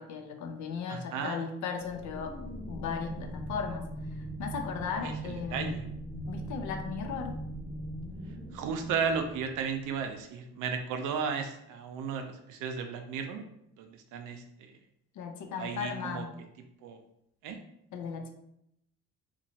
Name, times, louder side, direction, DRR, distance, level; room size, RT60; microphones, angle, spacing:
voice 1, 0.0-2.3 2.7-3.9 4.4-5.8 6.3-7.4 15.2-16.3 17.9-18.3, left 6 dB, 75° left, 5 dB, 0.5 m, -36 dB
voice 2, 0.9-1.5 5.0-5.9 8.5-13.4 13.8-14.4 15.6-16.3 16.8-17.0 17.4-17.6, right 6 dB, 90° right, 5 dB, 0.5 m, -34 dB
sound 1, 1.8-10.0, right 1 dB, 30° left, 0.7 m, -40 dB
2.9 x 2.3 x 2.8 m, 0.77 s
cardioid pair, 90°, 30 cm